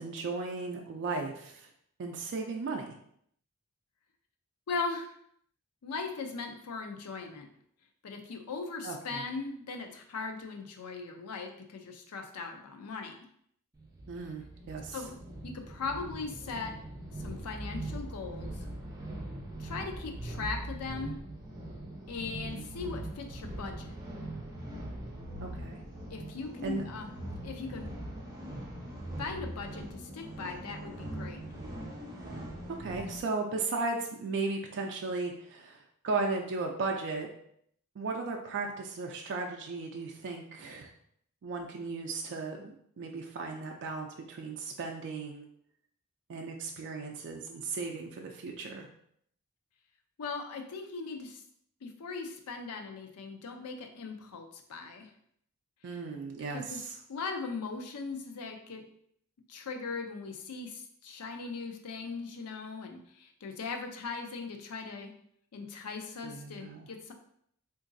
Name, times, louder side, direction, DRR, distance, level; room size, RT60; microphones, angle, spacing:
voice 1, 0.0-1.7 2.0-2.9 8.8-9.2 14.1-15.0 22.5-22.6 25.4-25.8 26.6-26.8 32.8-37.3 38.0-40.9 41.4-45.4 46.3-48.9 55.8-56.9 66.2-66.9, right 3 dB, 55° right, 1 dB, 0.4 m, -36 dB
voice 2, 4.7-5.1 5.8-7.5 8.0-13.2 14.9-15.2 15.4-16.7 17.2-18.6 19.6-21.2 22.1-23.9 26.1-27.1 27.4-27.9 29.2-31.4 50.2-51.4 51.8-55.1 56.5-56.8 57.1-58.8 59.5-65.1 65.5-67.1, left 4 dB, 85° left, 4 dB, 0.5 m, -39 dB
sound 1, 13.7-33.2, right 1 dB, 15° right, 0.6 m, -41 dB
3.8 x 2.5 x 2.5 m, 0.69 s
head